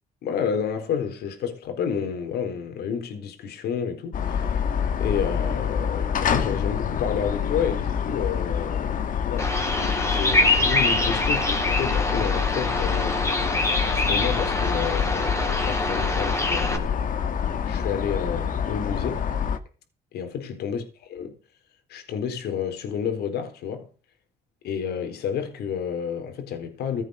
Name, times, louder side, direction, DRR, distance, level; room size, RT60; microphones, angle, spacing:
voice 1, 0.2-4.6 5.0-9.0 9.3-13.2 13.9-17.0 17.7-19.3 20.1-20.8 21.1-21.3 21.9-23.9 24.6-27.0, left 7 dB, 70° left, 4.1 m, -30 dB
sound 1, 4.1-19.6, left 7 dB, 55° left, 1.9 m, -27 dB
Bird vocalization bird call bird song, 9.4-16.8, left 2 dB, 15° left, 3.8 m, -25 dB
15.5 x 8.1 x 6.5 m
cardioid pair, 110°, 17 cm